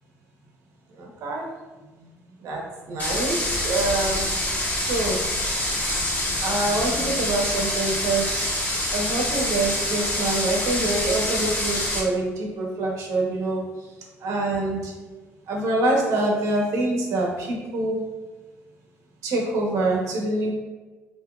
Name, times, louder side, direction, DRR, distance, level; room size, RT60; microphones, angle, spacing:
voice 1, 0.9-1.5 2.0-2.1 2.4-4.3 4.7-5.2 6.4-8.5 8.9-13.9 14.2-14.9 15.5-18.0 19.2-20.5, right 2 dB, 75° right, -1 dB, 1.1 m, -25 dB
sound 1, 3.0-12.0, left 1 dB, 30° left, 1.4 m, -26 dB
6.2 x 3.0 x 2.5 m, 1.3 s
cardioid pair, 110°, 5 cm